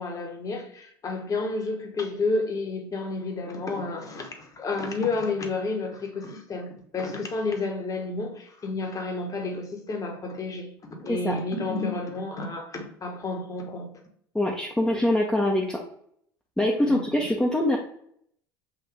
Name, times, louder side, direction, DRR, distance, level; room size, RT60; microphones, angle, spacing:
voice 1, 0.0-10.7 11.0-13.9 16.8-17.1, left 3 dB, 30° left, 1.1 m, -31 dB
voice 2, 14.3-15.8 16.6-17.8, left 1 dB, 5° left, 0.7 m, -24 dB
5.9 x 2.5 x 3.3 m
hypercardioid pair, 75°, 12 cm